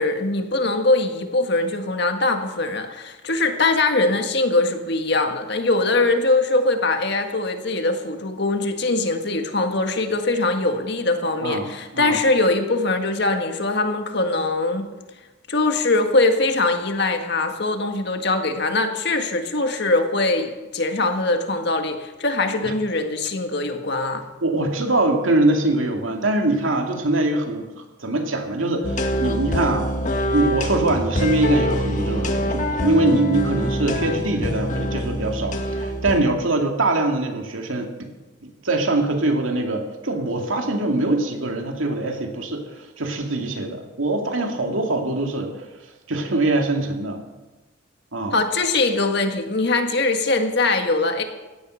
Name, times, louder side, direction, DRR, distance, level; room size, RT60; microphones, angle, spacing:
voice 1, 0.0-14.9 15.5-24.2 48.3-51.2, left 2 dB, 55° left, 6 dB, 1.7 m, -22 dB
voice 2, 11.4-12.2 22.6-22.7 24.4-27.7 28.0-29.9 30.3-38.1 38.4-42.6 43.0-45.5 46.1-47.2 48.1-48.4, right 2 dB, 80° right, 4 dB, 2.4 m, -23 dB
sound 1, 28.8-36.2, equal, 40° left, 1.6 m, -25 dB
17.0 x 12.0 x 6.4 m, 1.2 s
head